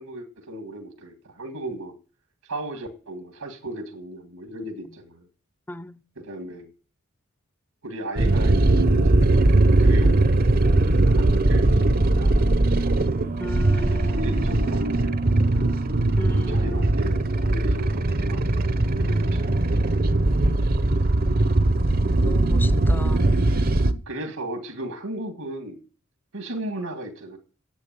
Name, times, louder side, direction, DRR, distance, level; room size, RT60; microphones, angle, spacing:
voice 1, 0.0-1.9 2.4-5.3 6.2-6.7 7.8-9.3 9.8-10.1 10.8-13.0 13.7-15.8 16.3-18.4 19.0-19.6 24.1-25.8 26.3-27.4, right 1 dB, 80° right, 2.0 m, -36 dB
voice 2, 5.7-6.0 13.4-14.3 16.2-17.1 22.2-23.3, left 1 dB, 10° left, 0.7 m, -36 dB
sound 1, 8.2-23.9, right 2 dB, 45° right, 0.9 m, -20 dB
10.5 x 8.3 x 9.1 m
head